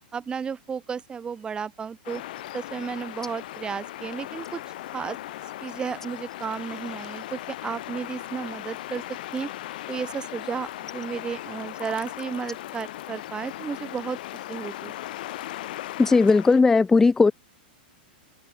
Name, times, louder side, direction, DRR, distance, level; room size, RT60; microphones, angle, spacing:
voice 1, 0.1-2.2 2.5-4.6 4.9-5.2 5.6-9.0 9.3-9.5 9.9-14.2 14.5-14.9, right 6 dB, 15° right, 4.8 m, -33 dB
sound 1, 2.0-16.6, left 15 dB, 65° left, 2.4 m, -38 dB
voice 2, 16.0-17.3, left 4 dB, 10° left, 0.3 m, -17 dB
hypercardioid pair, 130°, 5 cm